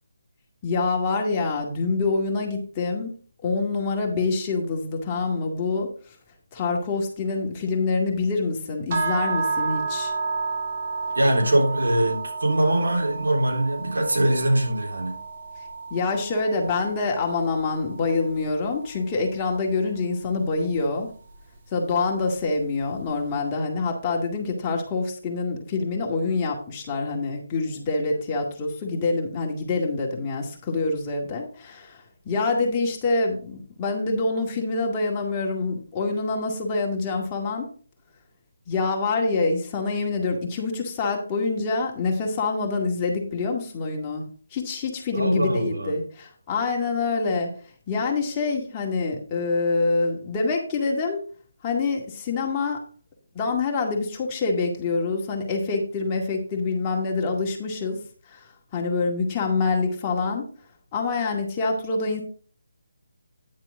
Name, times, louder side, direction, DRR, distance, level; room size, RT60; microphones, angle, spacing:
voice 1, 0.6-3.2 3.4-6.2 6.5-10.1 15.9-21.1 21.7-37.7 38.7-44.2 44.5-47.5 47.9-51.2 51.6-52.8 53.3-58.0 58.3-60.5 60.9-62.2, left 3 dB, 20° left, 0 dB, 2.0 m, -26 dB
sound 1, 8.9-19.0, right 4 dB, 40° right, 1.8 m, -31 dB
voice 2, 11.1-15.2 45.1-45.9, right 1 dB, 75° right, 1 dB, 3.7 m, -22 dB
9.9 x 7.3 x 3.7 m, 0.43 s
figure-of-eight pair, 155°, 0 cm